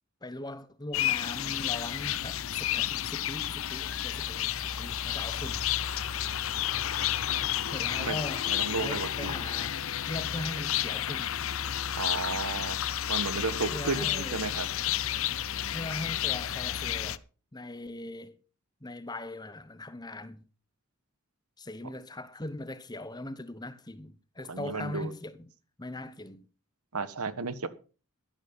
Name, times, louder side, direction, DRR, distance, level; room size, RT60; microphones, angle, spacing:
voice 1, 0.2-5.6 7.7-8.4 8.8-9.8 10.1-11.3 13.7-14.4 15.7-17.2 17.5-18.4 18.8-20.4 21.6-25.5 25.8-26.5, left 1 dB, 20° left, 1.0 m, -40 dB
sound 1, 0.9-17.2, left 11 dB, 65° left, 0.7 m, -31 dB
voice 2, 8.4-9.3 12.0-12.8 13.1-14.7 24.5-25.1 26.9-27.7, right 3 dB, 90° right, 1.4 m, -33 dB
12.5 x 11.0 x 5.6 m
head